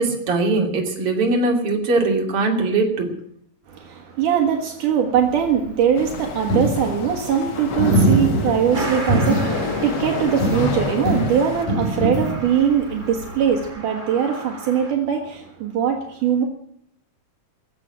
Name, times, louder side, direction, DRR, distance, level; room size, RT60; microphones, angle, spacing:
voice 1, 0.0-3.1, right 3 dB, 45° right, 1 dB, 3.4 m, -21 dB
voice 2, 3.7-16.5, right 8 dB, 75° right, 3 dB, 3.1 m, -21 dB
Coin (dropping), 5.1-13.7, right 1 dB, 80° left, 9.6 m, -24 dB
sound 1, 5.9-11.6, left 4 dB, 50° left, 1.3 m, -29 dB
Truck, 8.7-14.9, right 3 dB, 20° right, 1.5 m, -34 dB
19.5 x 7.8 x 8.8 m, 0.70 s
omnidirectional pair, 3.8 m